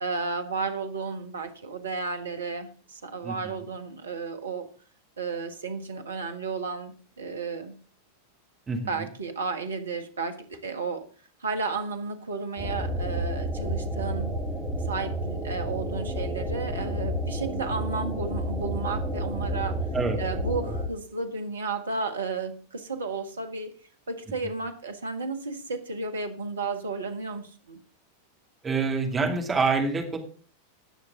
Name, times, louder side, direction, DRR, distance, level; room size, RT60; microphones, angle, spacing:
voice 1, 0.0-4.7 5.2-7.8 8.9-11.0 11.4-14.3 14.8-19.8 20.2-23.7 24.1-27.8, right 4 dB, 70° right, 7 dB, 1.5 m, -33 dB
voice 2, 3.2-3.6 8.7-9.1 19.9-20.2 24.4-24.5 28.6-30.2, right 4 dB, 15° right, 2 dB, 2.5 m, -27 dB
sound 1, 12.6-20.9, right 1 dB, 5° left, 4.1 m, -30 dB
19.0 x 6.5 x 3.7 m, 0.40 s
figure-of-eight pair, 90°, 0 cm